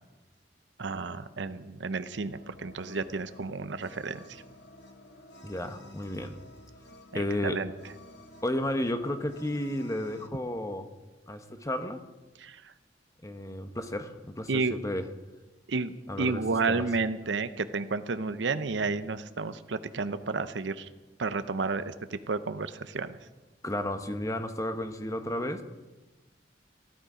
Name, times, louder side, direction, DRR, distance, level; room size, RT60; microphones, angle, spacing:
voice 1, 0.8-4.2 7.1-7.7 12.4-12.6 14.5-14.8 15.7-20.9 21.2-21.9 22.3-23.2, right 4 dB, 75° right, 12 dB, 0.7 m, -31 dB
sound 1, 2.3-10.3, left 1 dB, 65° left, 1.3 m, -52 dB
voice 2, 5.4-6.4 7.1-7.6 8.4-10.9 11.3-12.0 13.2-15.1 16.1-16.4 16.7-16.9 23.6-25.6, left 1 dB, 20° left, 7 dB, 1.0 m, -32 dB
16.5 x 12.0 x 5.0 m, 1.2 s
head